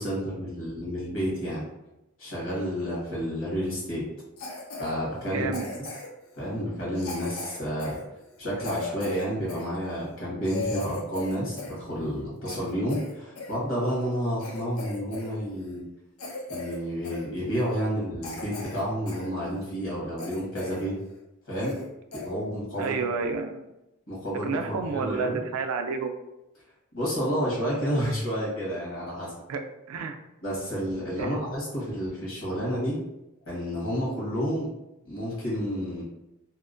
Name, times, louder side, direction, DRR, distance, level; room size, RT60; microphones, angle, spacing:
voice 1, 0.0-1.6 2.2-4.0 4.8-5.6 6.4-8.0 8.4-15.8 16.5-20.9 21.5-21.7 22.1-22.9 24.1-25.4 26.9-29.3 30.4-33.0 33.5-34.7 35.0-36.0, equal, 65° left, -5 dB, 1.3 m, -30 dB
Cough, 4.4-4.9 5.5-6.2 7.0-9.7 10.1-10.2 10.4-11.8 12.1-13.6 14.0-14.1 14.4-15.3 15.6-15.8 16.2-16.8 17.0-17.3 17.8-17.9 18.2-19.3 19.7-19.8 20.2-20.9 21.2-21.3 21.6-21.9 22.1-22.3 22.8-23.0, left 3 dB, 85° left, 0.6 m, -38 dB
voice 2, 5.2-5.7 22.8-23.7 24.4-26.1 29.5-30.2 31.2-31.5, right 4 dB, 80° right, 6 dB, 0.3 m, -30 dB
2.8 x 2.1 x 2.4 m, 0.91 s
head